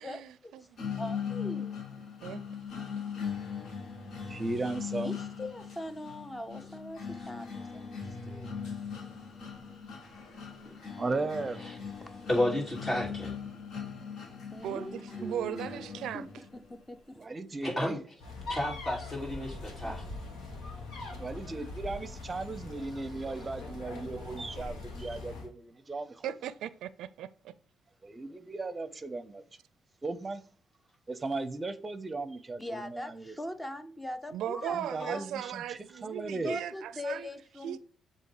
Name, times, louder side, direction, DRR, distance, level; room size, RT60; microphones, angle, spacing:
voice 1, 0.0-0.6 2.2-2.4 14.6-16.3 26.2-27.5 34.3-37.3 37.6-37.8, right 10 dB, 80° right, 0.4 m, -37 dB
sound 1, 0.8-16.7, left 6 dB, 60° left, 1.5 m, -40 dB
voice 2, 1.0-1.8 4.9-8.5 10.6-10.8 12.0-12.1 14.5-15.8 16.1-17.4 32.6-35.3 36.4-37.8, left 1 dB, 10° left, 0.7 m, -41 dB
voice 3, 4.3-5.1 11.0-11.6 17.2-18.0 21.2-26.3 28.0-29.4 30.0-30.4 31.1-33.3 34.7-36.6, right 3 dB, 25° right, 0.7 m, -36 dB
voice 4, 12.3-13.3 17.6-18.0 18.5-20.1, left 1 dB, 35° left, 2.9 m, -31 dB
sound 2, 18.2-25.5, left 3 dB, 85° left, 1.5 m, -42 dB
7.6 x 2.9 x 4.9 m
cardioid pair, 90°, 0 cm